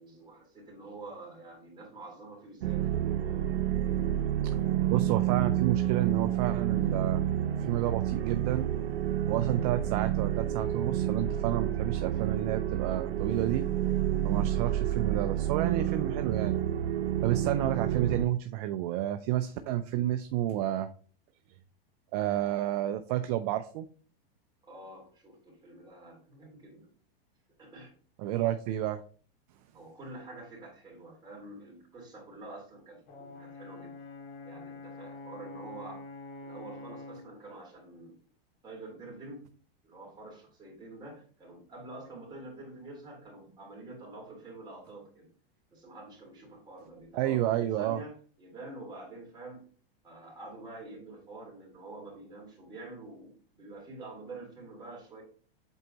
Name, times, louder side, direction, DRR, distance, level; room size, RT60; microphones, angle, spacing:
voice 1, 0.0-2.9 24.6-26.9 27.6-27.9 29.7-34.0 34.4-36.0 36.4-38.2 38.6-39.5 39.8-45.3 45.7-48.1 48.4-49.6 50.0-55.2, right 2 dB, 15° right, -4 dB, 3.4 m, -47 dB
sound 1, 2.6-18.3, right 11 dB, 90° right, 0.8 m, -29 dB
voice 2, 4.9-7.2 7.6-8.7 9.3-13.7 14.2-16.6 17.2-20.9 22.1-23.8 28.2-29.0 47.1-48.0, right 13 dB, 40° right, 9 dB, 0.5 m, -30 dB
Brass instrument, 33.1-37.3, left 2 dB, 40° left, 2.1 m, -45 dB
8.1 x 4.5 x 2.9 m, 0.42 s
supercardioid pair, 145°, 30 cm